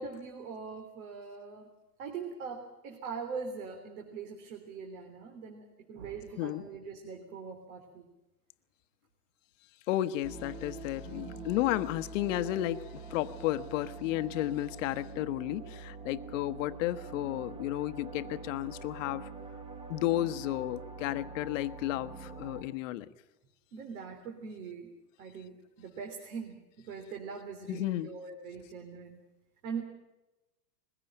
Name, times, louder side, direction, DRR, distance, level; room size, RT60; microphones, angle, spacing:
voice 1, 0.0-1.7 2.0-8.1 11.0-11.5 23.7-24.9 25.2-29.2 29.6-29.8, right 5 dB, 60° right, 3 dB, 3.4 m, -42 dB
voice 2, 9.9-19.3 19.9-23.1 27.7-28.2, left 15 dB, 50° left, 12 dB, 1.1 m, -33 dB
sound 1, 10.2-22.6, right 4 dB, 10° right, 1.2 m, -45 dB
21.5 x 16.0 x 8.9 m, 1.0 s
hypercardioid pair, 140°, 48 cm